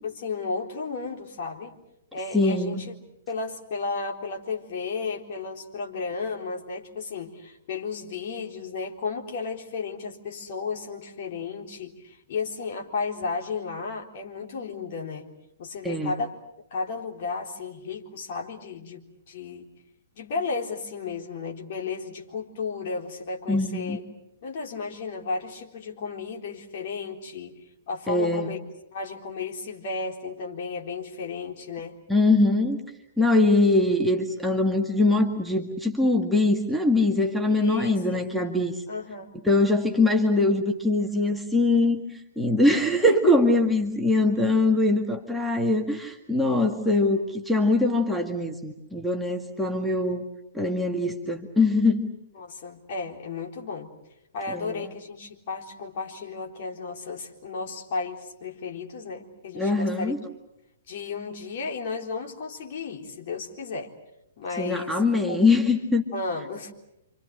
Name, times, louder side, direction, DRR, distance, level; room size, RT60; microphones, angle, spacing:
voice 1, 0.0-1.8 2.1-2.9 3.3-15.3 15.6-16.4 16.7-19.0 19.3-19.7 20.2-24.0 24.4-27.6 27.9-28.6 28.9-32.0 37.5-38.3 38.9-39.3 43.1-43.5 49.7-49.9 52.4-53.9 54.3-60.1 60.9-63.9 64.4-65.5 66.1-66.7, left 4 dB, 45° left, 1 dB, 3.9 m, -33 dB
voice 2, 2.3-2.8 15.8-16.1 23.5-24.0 28.1-28.5 32.1-32.8 33.2-38.7 39.4-42.0 42.4-50.3 50.5-52.1 54.5-54.7 59.6-60.2 64.6-66.0, left 2 dB, ahead, 0 dB, 2.0 m, -22 dB
29.5 x 26.0 x 6.6 m, 0.86 s
figure-of-eight pair, 115°, 0 cm